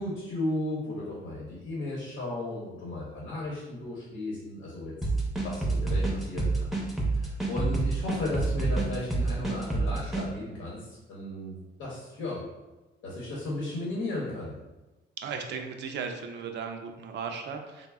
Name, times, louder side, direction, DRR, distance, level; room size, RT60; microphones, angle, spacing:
voice 1, 0.0-4.9 5.4-6.7 7.1-12.4 13.0-14.6, left 1 dB, 90° left, -5 dB, 0.8 m, -35 dB
sound 1, 5.0-10.3, right 3 dB, ahead, 0.5 m, -27 dB
voice 2, 15.2-17.9, right 6 dB, 65° right, 5 dB, 0.4 m, -36 dB
3.3 x 2.0 x 2.3 m, 1.1 s
cardioid pair, 90°, 20 cm